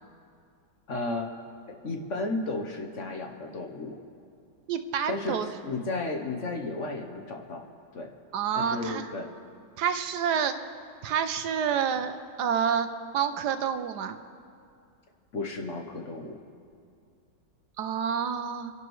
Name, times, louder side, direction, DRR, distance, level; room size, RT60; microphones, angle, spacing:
voice 1, 0.9-1.3 1.8-4.0 5.1-7.6 7.9-8.1 8.6-9.3 15.3-16.4, left 2 dB, 50° left, 3 dB, 1.1 m, -33 dB
voice 2, 4.7-5.5 8.3-9.1 9.8-10.6 11.0-12.9 13.1-14.2 17.8-18.7, right 7 dB, 70° right, 8 dB, 1.2 m, -28 dB
28.5 x 11.5 x 3.1 m, 2.4 s
omnidirectional pair, 1.9 m